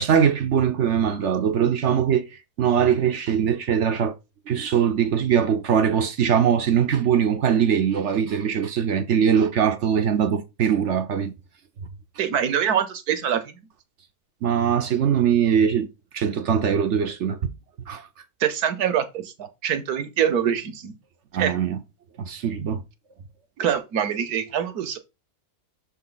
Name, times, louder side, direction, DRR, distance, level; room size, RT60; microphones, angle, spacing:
voice 1, 0.0-2.2 2.6-4.1 4.5-11.3 14.4-17.4 17.9-18.1 21.3-21.8 22.2-22.8, right 8 dB, 55° right, 0.9 m, -21 dB
voice 2, 12.2-13.6 18.4-20.9 21.4-21.5 23.6-25.0, right 8 dB, 75° right, 1.5 m, -24 dB
6.5 x 4.3 x 3.9 m
omnidirectional pair, 1.6 m